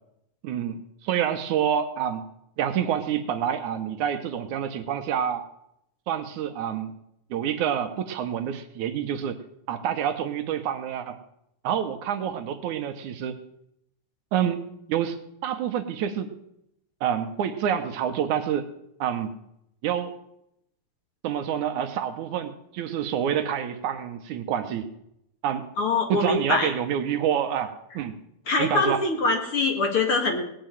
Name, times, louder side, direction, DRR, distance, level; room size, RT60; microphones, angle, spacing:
voice 1, 0.4-2.2 2.6-5.4 6.1-6.9 7.3-9.4 9.7-11.2 11.6-13.4 14.3-14.6 14.9-15.2 15.4-16.3 17.0-18.7 19.0-19.3 19.8-20.2 21.2-24.9 25.4-25.7 26.1-28.1 28.6-29.0, right 9 dB, 75° right, 9 dB, 2.3 m, -27 dB
voice 2, 25.8-26.7 28.5-30.4, left 3 dB, 45° left, 4 dB, 2.4 m, -23 dB
18.5 x 7.0 x 9.1 m, 0.78 s
omnidirectional pair, 3.6 m